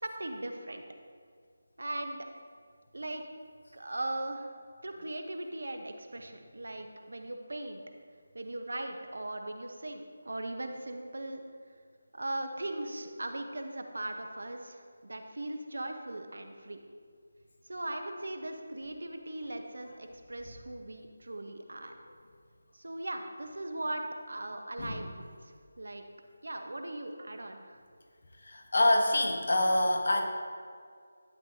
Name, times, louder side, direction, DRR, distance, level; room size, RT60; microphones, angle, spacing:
voice 1, 0.0-0.8 1.8-2.2 2.9-3.2 3.7-4.5 4.8-7.8 8.3-11.4 12.1-16.8 17.7-22.0 22.7-26.0 26.4-27.8, right 1 dB, 70° right, 5 dB, 1.0 m, -39 dB
voice 2, 28.4-30.2, left 1 dB, 60° left, 2 dB, 1.1 m, -26 dB
12.0 x 8.0 x 2.8 m, 2.1 s
figure-of-eight pair, 160°, 0 cm